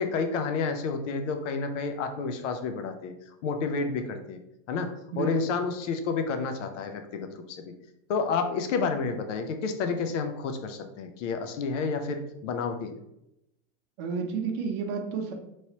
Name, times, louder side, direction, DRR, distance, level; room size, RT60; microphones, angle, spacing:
voice 1, 0.0-3.1 3.4-4.4 4.7-4.9 5.2-7.6 8.1-12.9, left 4 dB, 70° left, 6 dB, 0.6 m, -30 dB
voice 2, 14.0-15.3, right 5 dB, 50° right, 2 dB, 0.6 m, -31 dB
3.1 x 2.9 x 2.8 m, 0.84 s
supercardioid pair, 155°, 38 cm